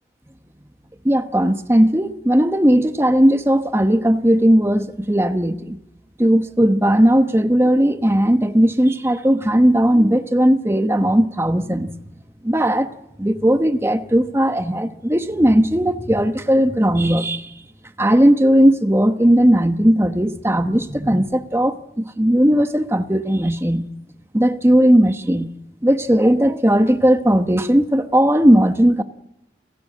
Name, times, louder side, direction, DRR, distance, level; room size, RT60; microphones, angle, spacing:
voice 1, 1.0-5.8 6.2-11.9 12.4-12.9 13.2-17.5 18.0-23.9 24.3-25.5 25.8-29.0, equal, 15° right, 1.0 m, -17 dB
29.5 x 16.0 x 7.6 m
head